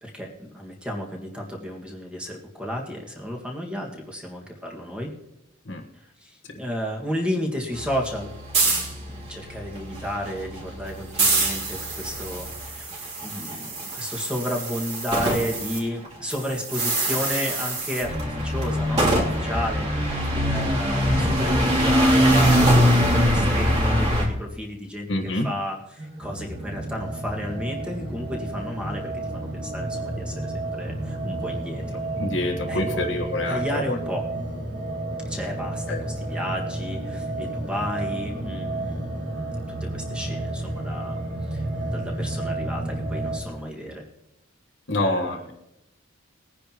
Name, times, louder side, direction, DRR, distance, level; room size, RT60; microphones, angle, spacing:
voice 1, 0.0-5.1 6.2-31.8 32.7-33.1 33.5-34.2 35.3-41.2 41.5-44.0 44.9-45.5, equal, 5° right, -1 dB, 1.9 m, -32 dB
sound 1, 7.7-15.8 16.0-24.3, equal, 30° right, 3.1 m, -23 dB
voice 2, 25.1-25.5 32.2-34.0 35.9-36.0 44.9-45.5, left 2 dB, 65° left, 3 dB, 1.4 m, -26 dB
sound 2, 26.0-43.4, right 2 dB, 70° right, 3.0 m, -31 dB
20.0 x 10.0 x 3.0 m, 0.87 s
head